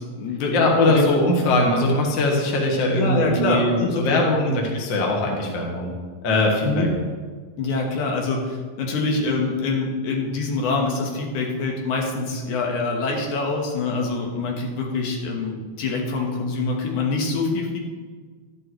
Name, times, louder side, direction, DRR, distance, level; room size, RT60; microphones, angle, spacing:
voice 1, 0.0-1.2 2.9-4.2 6.6-6.9 7.6-17.8, left 3 dB, 80° left, 0 dB, 2.8 m, -25 dB
voice 2, 0.5-5.9 6.2-6.9, left 1 dB, 45° left, 0 dB, 1.9 m, -21 dB
12.0 x 11.0 x 3.2 m, 1.5 s
omnidirectional pair, 3.4 m